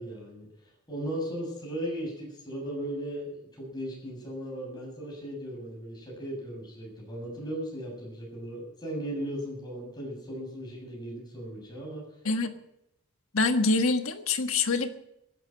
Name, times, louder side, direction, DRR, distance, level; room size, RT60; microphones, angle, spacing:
voice 1, 0.0-12.0, equal, 20° left, -2 dB, 7.1 m, -37 dB
voice 2, 13.3-14.9, left 3 dB, 75° left, 7 dB, 1.5 m, -25 dB
15.0 x 11.5 x 7.7 m, 0.84 s
head